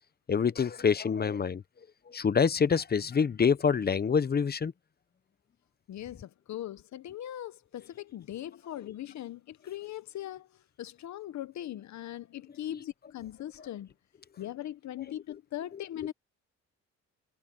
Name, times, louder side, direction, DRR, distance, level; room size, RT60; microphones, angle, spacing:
voice 1, 0.3-1.6 2.1-4.7 12.7-12.8, left 6 dB, 30° left, 0.8 m, -26 dB
voice 2, 5.9-13.9 14.4-16.1, left 12 dB, 65° left, 1.0 m, -40 dB
cardioid pair, 90°, 30 cm